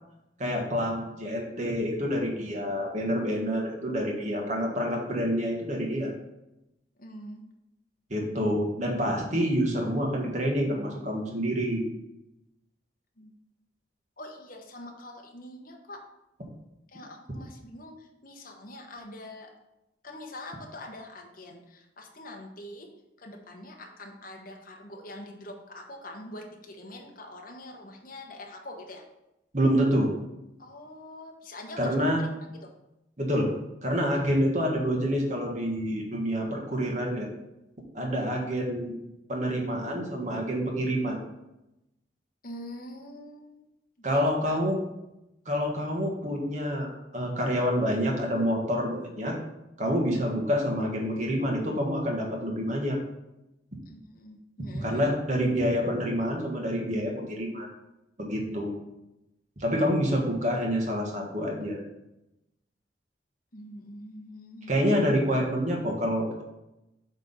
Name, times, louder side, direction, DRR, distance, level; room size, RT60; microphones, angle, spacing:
voice 1, 0.4-6.1 8.1-11.8 29.5-30.1 31.8-32.2 33.2-33.5 33.8-37.3 37.9-38.9 39.3-41.2 44.0-44.8 45.4-49.3 49.8-53.0 54.7-57.7 58.2-58.7 59.6-61.8 64.7-66.4, equal, 40° right, 0 dB, 1.5 m, -27 dB
voice 2, 7.0-7.4 13.2-13.3 14.2-16.0 16.9-17.9 18.2-19.5 20.0-22.9 23.2-29.0 30.6-31.8 42.4-43.6 44.1-44.2 44.5-44.6 53.9-55.1 63.5-64.8, left 1 dB, 50° left, 1 dB, 1.2 m, -44 dB
8.0 x 3.6 x 5.5 m, 0.92 s
head